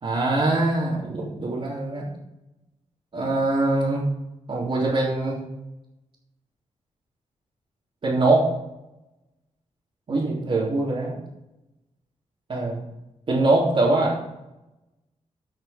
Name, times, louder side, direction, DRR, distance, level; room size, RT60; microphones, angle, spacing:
voice 1, 0.0-2.1 3.1-4.0 4.5-5.4 8.0-8.5 10.1-11.1 12.5-12.8 13.3-14.2, right 2 dB, 50° right, -8 dB, 3.3 m, -23 dB
12.5 x 6.1 x 5.3 m, 0.91 s
wide cardioid pair, 120°, 12 cm